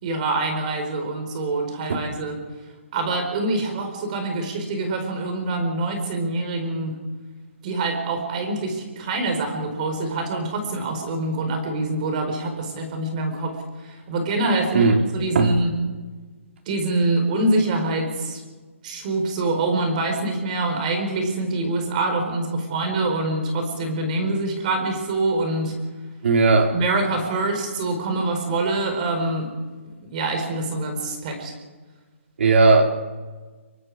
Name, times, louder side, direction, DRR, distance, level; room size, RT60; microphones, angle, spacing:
voice 1, 0.0-2.4 2.9-7.0 7.6-13.6 13.9-15.7 16.7-18.4 18.8-25.7 26.7-29.5 30.0-31.5, right 2 dB, 35° right, 4 dB, 4.6 m, -25 dB
voice 2, 26.2-26.8 32.4-32.8, right 3 dB, 60° right, 3 dB, 3.8 m, -16 dB
26.0 x 23.0 x 4.9 m, 1.3 s
hypercardioid pair, 160°, 7 cm